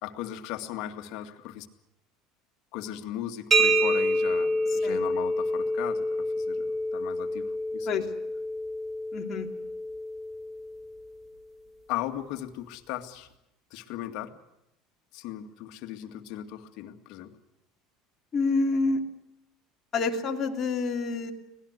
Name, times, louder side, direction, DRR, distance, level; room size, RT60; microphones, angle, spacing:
voice 1, 0.0-1.7 2.7-6.1 6.4-8.1 11.9-13.3 13.7-14.4 15.1-17.3, left 12 dB, 60° left, 5 dB, 2.2 m, -37 dB
sound 1, 3.5-11.1, right 1 dB, 20° right, 2.3 m, -28 dB
voice 2, 9.1-9.5 18.3-19.0 19.9-21.3, left 3 dB, 30° left, 1 dB, 2.9 m, -27 dB
25.0 x 18.5 x 8.2 m, 0.85 s
cardioid pair, 150°, 0 cm